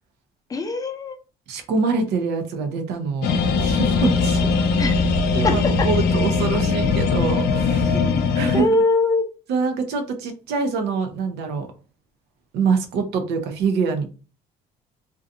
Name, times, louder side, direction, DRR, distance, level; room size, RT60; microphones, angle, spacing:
voice 1, 0.5-1.2 4.8-4.9 5.4-5.9 7.9-8.2 8.5-9.2, left 3 dB, 20° left, 6 dB, 0.5 m, -22 dB
voice 2, 1.5-3.3 3.6-4.5 5.3-8.0 8.3-8.7 9.5-11.7 12.5-14.1, right 4 dB, 80° right, 6 dB, 0.6 m, -24 dB
sound 1, 3.2-8.6, left 4 dB, 70° left, 0.4 m, -20 dB
2.7 x 2.2 x 2.5 m, 0.34 s
cardioid pair, 110°, 17 cm